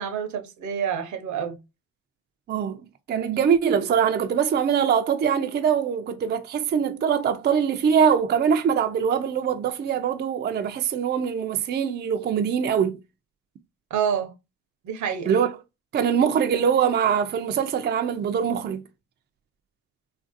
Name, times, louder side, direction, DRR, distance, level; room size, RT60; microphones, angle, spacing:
voice 1, 0.0-1.6 13.9-14.3 14.8-15.4, right 8 dB, 75° right, 0.7 m, -28 dB
voice 2, 2.5-2.8 3.1-13.0 15.3-15.5 15.9-18.8, right 7 dB, 35° right, 0.4 m, -23 dB
3.2 x 2.5 x 2.5 m
cardioid pair, 90°, 30 cm